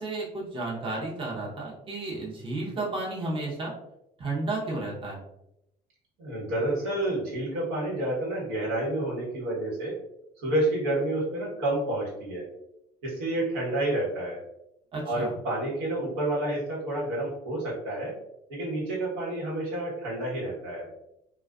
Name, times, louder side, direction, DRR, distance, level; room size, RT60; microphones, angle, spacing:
voice 1, 0.0-3.7 4.2-5.2 14.9-15.3, right 2 dB, 30° right, -4 dB, 0.8 m, -32 dB
voice 2, 6.2-9.9 10.4-12.5 13.0-14.4 15.0-18.1 18.5-20.9, right 1 dB, 85° right, -5 dB, 1.3 m, -29 dB
2.5 x 2.3 x 2.3 m, 0.83 s
supercardioid pair, 95°, 18 cm